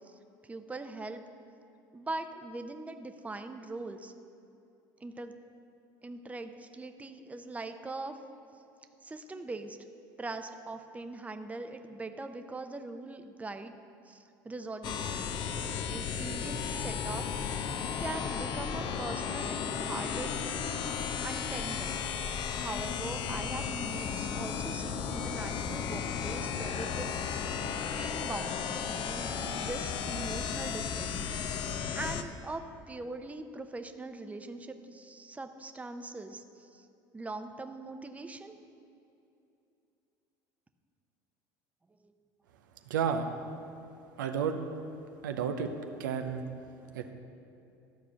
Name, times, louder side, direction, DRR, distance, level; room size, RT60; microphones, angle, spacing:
voice 1, 0.4-1.2 1.9-4.1 5.0-5.4 6.0-8.2 9.0-9.8 10.2-13.8 14.1-15.5 15.9-17.2 18.0-20.6 21.2-22.1 22.5-27.6 28.0-32.6 32.9-36.9 37.1-38.6 42.0-42.1, right 2 dB, 15° right, 7 dB, 0.7 m, -42 dB
sound 1, 14.8-32.2, left 7 dB, 50° left, 0.7 m, -34 dB
voice 2, 42.9-43.3 44.2-44.6 45.2-45.7 46.0-46.5 46.9-47.1, right 7 dB, 90° right, 6 dB, 0.6 m, -31 dB
12.5 x 4.9 x 7.0 m, 2.6 s
hypercardioid pair, 80°, 10 cm